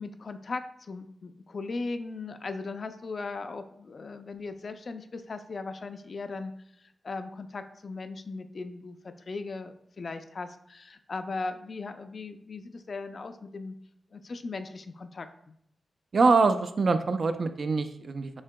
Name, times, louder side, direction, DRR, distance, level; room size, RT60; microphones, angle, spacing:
voice 1, 0.0-6.5 7.0-13.8 14.1-15.3, left 3 dB, 50° left, 9 dB, 0.4 m, -38 dB
voice 2, 16.1-18.3, right 4 dB, 55° right, 9 dB, 0.4 m, -24 dB
7.1 x 2.8 x 2.2 m, 0.76 s
cardioid pair, 80°, 0 cm